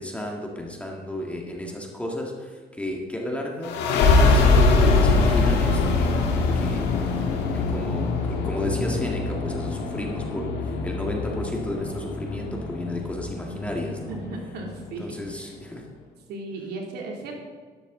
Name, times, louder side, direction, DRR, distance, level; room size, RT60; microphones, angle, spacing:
voice 1, 0.0-14.2 15.0-15.8, left 1 dB, 5° left, 0 dB, 1.8 m, -33 dB
sound 1, 3.6-14.9, left 3 dB, 85° left, 1.9 m, -23 dB
voice 2, 14.1-15.2 16.3-17.4, right 3 dB, 75° right, 1 dB, 2.8 m, -35 dB
12.0 x 12.0 x 3.8 m, 1.5 s
cardioid pair, 110°, 17 cm